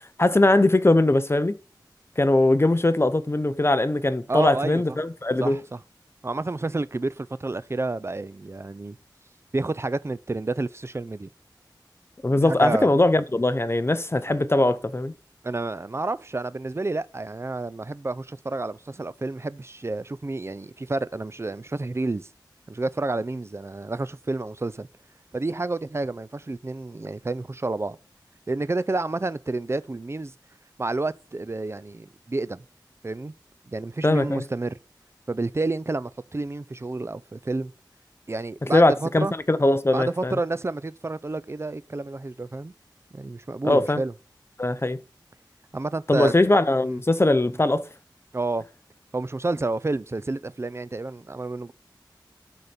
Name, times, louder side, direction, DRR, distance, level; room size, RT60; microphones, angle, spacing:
voice 1, 0.2-1.6 2.2-5.6 12.2-15.1 34.0-34.4 38.6-40.4 43.6-44.0 44.6-45.0 46.1-47.9, left 2 dB, 30° left, 0.7 m, -21 dB
voice 2, 4.3-5.0 5.4-5.8 6.2-9.0 9.5-11.3 12.4-12.9 15.4-22.3 22.7-24.9 25.3-28.0 28.5-30.3 30.8-32.6 33.0-33.3 33.7-34.8 35.3-37.7 38.3-39.3 39.9-42.7 43.1-44.1 45.7-46.3 46.8-47.0 48.3-48.6 49.1-51.7, right 2 dB, 35° right, 0.5 m, -30 dB
12.0 x 4.3 x 5.1 m
wide cardioid pair, 55°, 8 cm